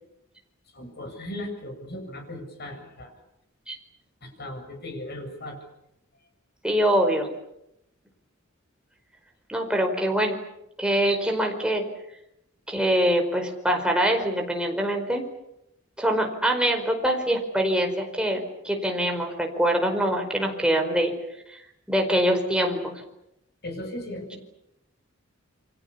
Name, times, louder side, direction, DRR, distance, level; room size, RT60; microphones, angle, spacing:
voice 1, 0.7-3.1 4.2-5.6 9.7-9.8 23.6-24.4, left 1 dB, 55° left, 5 dB, 7.5 m, -37 dB
voice 2, 6.6-7.3 9.5-10.3 10.8-11.8 12.7-15.2 16.0-21.1 21.5-21.6 21.9-22.9, equal, 5° right, 3 dB, 4.8 m, -24 dB
29.0 x 24.5 x 7.1 m, 0.83 s
head